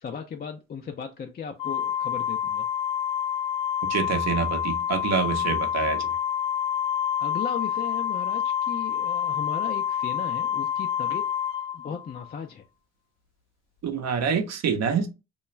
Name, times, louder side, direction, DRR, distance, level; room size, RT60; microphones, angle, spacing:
voice 1, 0.0-2.6 7.2-11.2 11.7-12.6, left 7 dB, 30° left, 0.4 m, -36 dB
Organ, 1.6-12.3, left 9 dB, 80° left, 0.5 m, -28 dB
voice 2, 3.9-6.1 13.8-15.1, right 6 dB, 55° right, 0.7 m, -26 dB
2.3 x 2.3 x 2.9 m
hypercardioid pair, 55°, 32 cm